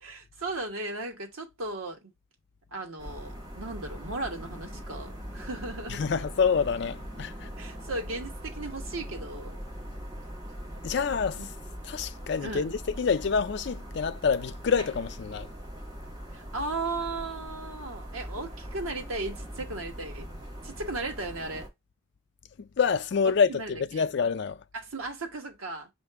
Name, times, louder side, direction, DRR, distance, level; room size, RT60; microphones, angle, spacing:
voice 1, 0.0-2.1 2.7-6.0 7.6-9.6 11.4-11.5 12.4-12.7 16.3-20.3 20.6-21.7 23.2-24.1 24.7-25.9, right 2 dB, 90° right, 1.3 m, -36 dB
sound 1, 3.0-21.7, equal, 20° right, 1.6 m, -41 dB
voice 2, 5.9-7.5 10.8-11.4 11.9-15.5 22.6-24.6, left 6 dB, 55° left, 0.4 m, -27 dB
5.7 x 2.6 x 3.4 m
head